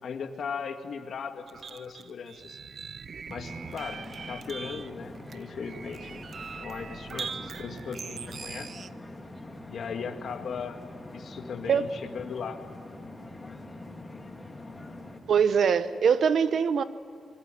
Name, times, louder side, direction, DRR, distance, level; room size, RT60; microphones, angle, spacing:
voice 1, 0.0-2.6 3.3-6.2 6.6-8.8 9.7-10.8 11.1-12.6, left 6 dB, 60° left, 6 dB, 2.1 m, -38 dB
sound 1, 1.5-8.9, right 6 dB, 45° right, 0.5 m, -41 dB
sound 2, 3.4-15.2, left 1 dB, 10° left, 2.4 m, -44 dB
voice 2, 15.3-16.8, right 7 dB, 60° right, 13 dB, 1.0 m, -23 dB
26.0 x 22.5 x 9.2 m, 2.3 s
wide cardioid pair, 140°, 0 cm